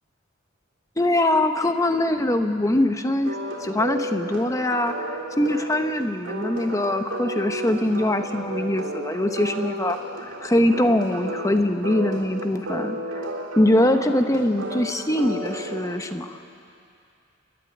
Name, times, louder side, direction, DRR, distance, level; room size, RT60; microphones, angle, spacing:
voice 1, 1.0-13.0 13.6-16.4, left 1 dB, 15° left, 7 dB, 1.0 m, -23 dB
sound 1, 3.2-15.9, right 1 dB, 85° right, 4.0 m, -33 dB
29.0 x 11.5 x 10.0 m, 2.5 s
head